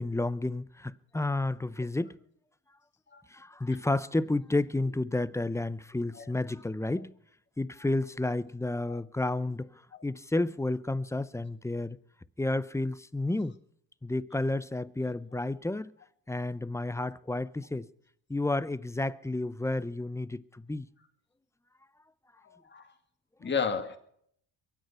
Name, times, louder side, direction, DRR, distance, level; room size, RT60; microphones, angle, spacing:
voice 1, 0.0-2.1 3.3-7.1 7.6-9.7 10.0-12.0 12.4-13.6 14.0-15.9 16.3-17.9 18.3-20.9, left 2 dB, 5° left, 0.6 m, -31 dB
voice 2, 22.5-22.8 23.4-24.0, left 6 dB, 25° left, 1.9 m, -32 dB
23.0 x 9.6 x 5.7 m
cardioid pair, 95°, 46 cm